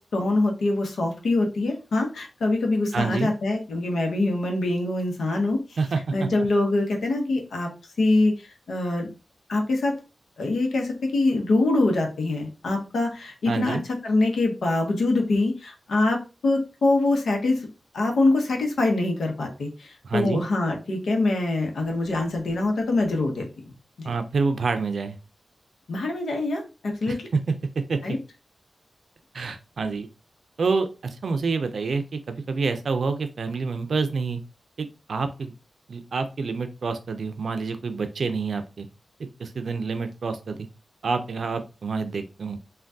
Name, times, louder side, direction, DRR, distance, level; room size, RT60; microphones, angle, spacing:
voice 1, 0.0-5.6 6.1-7.7 8.0-8.3 8.7-9.1 9.5-9.9 10.4-13.8 14.0-17.6 17.9-23.5 24.0-24.1 25.9-27.3 28.0-28.2, left 2 dB, 85° left, 2 dB, 0.8 m, -24 dB
voice 2, 2.9-3.3 5.8-6.3 13.5-13.8 20.0-20.5 24.0-25.2 27.1-27.5 27.9-28.2 29.3-30.1 30.6-34.4 34.8-35.5 35.9-38.9 39.4-40.7 41.0-42.6, right 4 dB, 75° right, 8 dB, 0.4 m, -27 dB
3.3 x 2.2 x 2.6 m, 0.31 s
cardioid pair, 50°, 0 cm